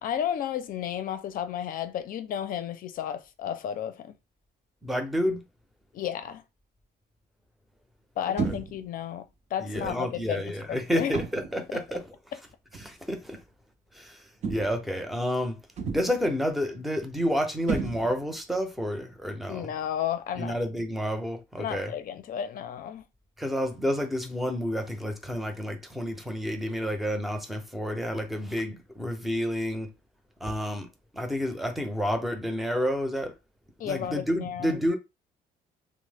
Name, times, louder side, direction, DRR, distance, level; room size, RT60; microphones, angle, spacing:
voice 1, 0.0-4.1 5.9-6.4 8.2-9.3 9.5-11.1 11.7-11.8 19.5-20.6 21.6-23.0 33.8-34.8, left 9 dB, 55° left, 0.6 m, -32 dB
voice 2, 4.8-5.4 8.4-8.5 9.6-12.1 12.7-13.4 13.9-15.6 15.9-19.7 20.4-21.9 23.4-29.9 30.4-33.3 33.8-35.0, equal, ahead, 0.7 m, -30 dB
sound 1, 8.4-8.9 9.7-10.1 11.1-11.6 12.7-12.9 14.4-14.9 15.8-16.3 17.7-18.4, right 5 dB, 45° right, 0.6 m, -32 dB
3.0 x 2.1 x 3.4 m
cardioid pair, 110°, 17 cm